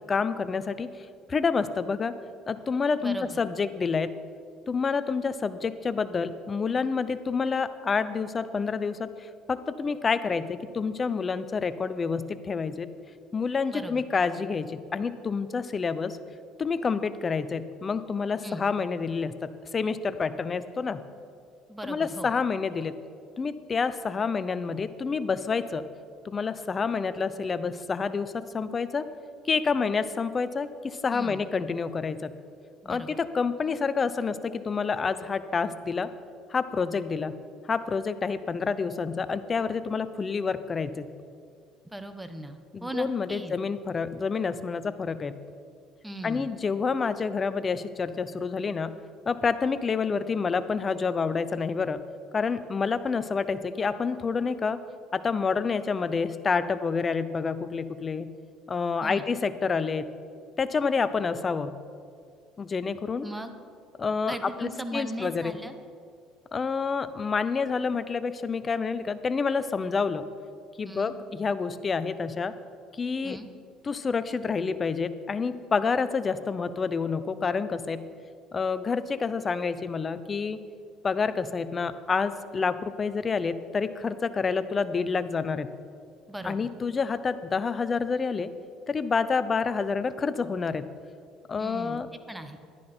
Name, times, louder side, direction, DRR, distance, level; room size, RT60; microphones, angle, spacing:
voice 1, 0.1-2.1 2.5-4.2 4.7-12.9 13.3-16.2 16.6-21.0 21.8-23.0 23.4-25.8 26.2-29.0 29.4-32.3 32.9-36.1 36.5-37.4 37.7-41.1 42.7-45.4 46.2-49.0 49.3-52.0 52.3-54.8 55.1-58.3 58.7-60.1 60.6-61.7 62.6-63.3 64.0-65.6 66.5-70.3 70.8-72.5 72.9-73.4 73.8-78.0 78.5-80.6 81.0-85.7 86.4-88.5 88.9-90.9 91.5-92.1, left 5 dB, 30° left, 13 dB, 0.6 m, -28 dB
voice 2, 3.0-3.4 13.7-14.0 18.4-18.7 21.7-22.3 31.1-31.5 32.8-33.2 41.8-43.5 46.0-46.6 59.0-59.3 63.2-63.5 64.3-65.7 70.8-71.1 73.2-73.5 86.3-86.7 91.6-92.0 92.3-92.6, right 1 dB, 10° right, 8 dB, 1.0 m, -38 dB
11.5 x 10.5 x 4.4 m, 2.2 s
supercardioid pair, 90°, 0 cm